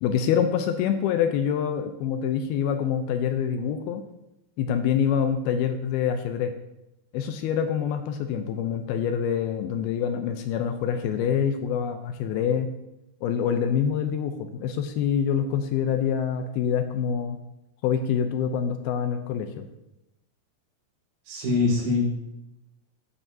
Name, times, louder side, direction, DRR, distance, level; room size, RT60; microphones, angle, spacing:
voice 1, 0.0-4.0 4.6-6.5 7.1-12.7 13.2-17.4 17.8-19.7, left 8 dB, 80° left, 7 dB, 2.4 m, -26 dB
voice 2, 21.3-22.1, left 3 dB, 65° right, -10 dB, 5.8 m, -23 dB
14.5 x 9.0 x 2.8 m, 0.89 s
omnidirectional pair, 4.8 m